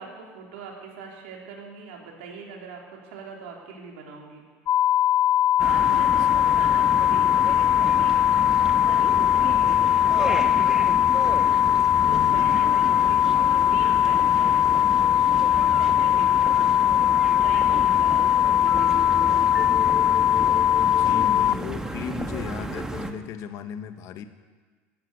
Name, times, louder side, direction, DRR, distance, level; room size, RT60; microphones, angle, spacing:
voice 1, 0.0-4.5 5.6-11.1 11.6-19.7, right 4 dB, 80° right, 0 dB, 3.4 m, -41 dB
sound 1, 4.7-21.5, left 11 dB, 45° left, 0.4 m, -20 dB
voice 2, 5.6-6.4 12.0-13.3 20.8-24.3, left 9 dB, 60° left, 10 dB, 1.3 m, -37 dB
sound 2, 5.6-23.1, right 2 dB, 10° right, 1.4 m, -33 dB
15.5 x 10.5 x 8.1 m, 1.4 s
supercardioid pair, 85°, 6 cm